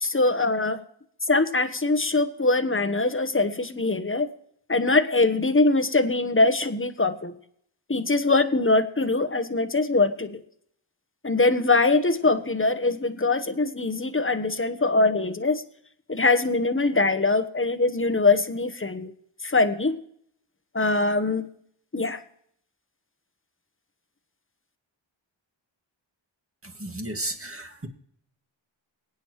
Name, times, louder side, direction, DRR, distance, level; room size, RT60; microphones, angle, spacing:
voice 1, 0.0-0.8 1.3-4.3 4.7-7.3 7.9-10.4 11.2-15.6 16.1-19.1 19.4-20.0 20.7-21.5 21.9-22.2, left 3 dB, 25° left, 8 dB, 1.2 m, -22 dB
voice 2, 26.6-27.9, right 1 dB, 30° right, 4 dB, 2.2 m, -34 dB
22.0 x 9.3 x 3.2 m, 0.67 s
cardioid pair, 40°, 48 cm